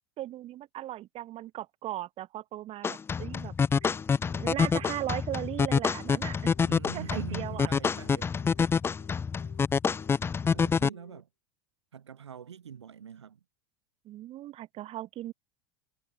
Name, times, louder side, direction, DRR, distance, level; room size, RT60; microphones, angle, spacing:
voice 1, 0.2-3.5 3.8-3.9 4.3-6.5 6.9-7.7 14.0-15.3, right 14 dB, 45° right, 4.7 m, -38 dB
sound 1, 2.8-10.9, left 6 dB, 15° left, 0.5 m, -27 dB
Telephone, 3.8-11.2, left 15 dB, 70° left, 4.6 m, -56 dB
voice 2, 6.6-8.3 10.5-11.3 11.9-13.4, right 8 dB, 85° right, 2.0 m, -43 dB
hypercardioid pair, 85°, 14 cm